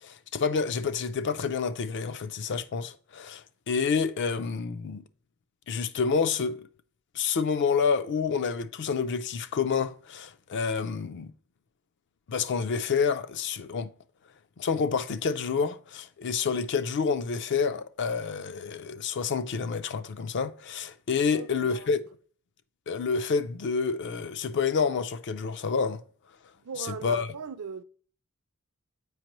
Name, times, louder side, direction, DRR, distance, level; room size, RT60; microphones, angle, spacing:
voice 1, 0.0-5.0 5.7-6.7 7.1-11.3 12.3-13.9 14.6-22.0 22.9-26.0 26.8-27.3, left 5 dB, 55° left, 0.4 m, -28 dB
voice 2, 21.3-21.9 26.6-27.8, right 5 dB, 70° right, 0.5 m, -38 dB
7.7 x 5.1 x 3.0 m
head